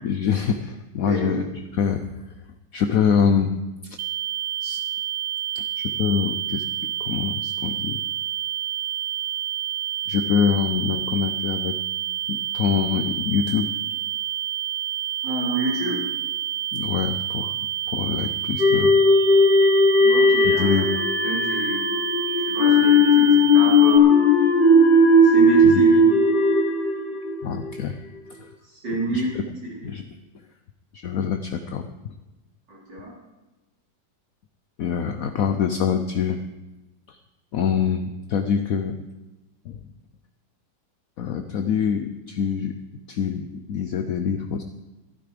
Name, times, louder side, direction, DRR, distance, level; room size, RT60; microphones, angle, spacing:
voice 1, 0.0-2.0 2.7-3.5 3.8-4.0 4.6-4.8 5.5-6.6 7.0-8.0 10.1-11.8 12.3-13.7 16.7-17.5 17.9-18.9 20.4-20.9 25.6-25.8 27.4-28.0 28.4-28.5 28.9-29.5 29.8-30.0 30.9-32.1 34.8-36.4 37.1-37.2 37.5-39.0 39.7-39.8 41.2-42.7 43.1-44.6, left 7 dB, 65° left, 8 dB, 1.0 m, -25 dB
sound 1, 4.0-24.0, right 11 dB, 70° right, 1.1 m, -29 dB
voice 2, 15.2-16.0 20.0-20.9 21.2-21.8 22.5-24.2 25.2-26.0 28.8-29.4 32.7-33.1, right 1 dB, 85° right, -5 dB, 4.7 m, -28 dB
sound 2, 18.6-27.8, left 2 dB, 35° left, 1.0 m, -17 dB
13.0 x 12.0 x 5.0 m, 1.1 s
omnidirectional pair, 1.9 m